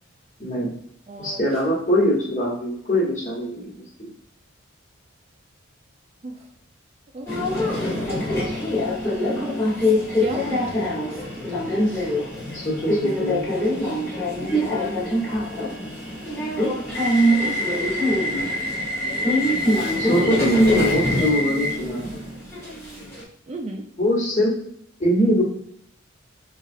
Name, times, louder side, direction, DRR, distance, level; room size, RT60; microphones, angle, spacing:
voice 1, 0.4-0.7 1.2-4.1 12.5-13.4 20.0-22.1 24.0-24.5 25.0-25.4, equal, 35° left, -4 dB, 1.3 m, -22 dB
voice 2, 1.1-1.4 6.2-6.4 7.1-7.3 7.6-8.2 9.2-11.2 11.5-12.0 13.6-14.2 14.9-16.0 16.9-17.4 18.2-18.4 18.8-18.9 20.7-20.9 21.2-21.3 23.5-23.8, right 2 dB, 30° right, 1 dB, 0.3 m, -36 dB
Subway metro underground, 7.3-23.2, left 1 dB, 15° left, 1.1 m, -24 dB
4.3 x 2.4 x 2.5 m, 0.69 s
head